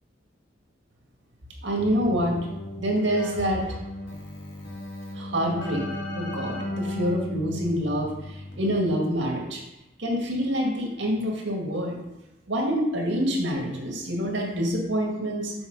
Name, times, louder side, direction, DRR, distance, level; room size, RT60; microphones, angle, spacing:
voice 1, 1.6-2.4 2.8-3.6 5.2-5.8 6.2-9.6 10.0-12.0 12.5-15.5, equal, 80° right, 0 dB, 1.9 m, -26 dB
Keyboard (musical), 1.8-9.1, left 1 dB, 70° left, 1.8 m, -35 dB
7.2 x 4.5 x 5.3 m, 0.96 s
head